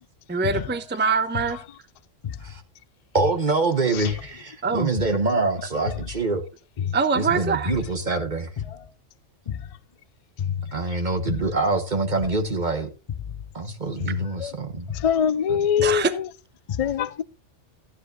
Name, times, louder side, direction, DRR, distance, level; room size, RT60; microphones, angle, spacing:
voice 1, 0.3-1.6 4.6-4.9 6.9-7.7 15.8-16.1, right 4 dB, 10° right, 0.5 m, -23 dB
voice 2, 3.1-6.4 7.1-8.5 10.7-12.9 13.5-14.9 15.5-15.6, right 3 dB, 40° right, 1.3 m, -25 dB
voice 3, 15.0-16.0 16.8-17.2, left 8 dB, 60° left, 0.3 m, -21 dB
14.0 x 9.7 x 2.5 m
omnidirectional pair, 1.3 m